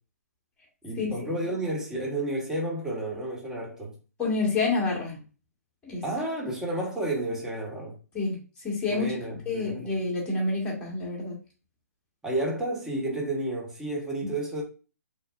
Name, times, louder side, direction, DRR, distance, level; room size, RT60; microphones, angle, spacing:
voice 1, 0.8-4.0 6.0-8.0 8.9-10.0 12.2-14.6, right 1 dB, 5° right, 0.5 m, -31 dB
voice 2, 4.2-5.2 5.8-6.0 8.1-8.4 8.6-9.1 9.5-11.4, left 3 dB, 10° left, 1.0 m, -28 dB
2.9 x 2.2 x 2.2 m
hypercardioid pair, 140°, 9 cm